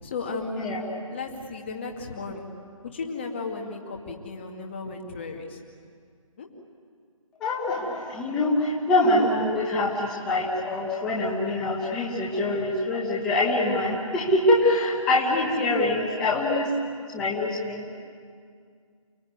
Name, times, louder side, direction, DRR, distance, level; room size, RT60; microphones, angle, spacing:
voice 1, 0.0-2.5 2.8-5.6 6.4-6.5 15.5-16.0, left 3 dB, 20° left, 1 dB, 2.1 m, -35 dB
voice 2, 7.4-16.7 17.1-18.0, left 2 dB, 5° left, -5 dB, 1.3 m, -24 dB
29.5 x 18.0 x 9.5 m, 2.1 s
figure-of-eight pair, 170°, 18 cm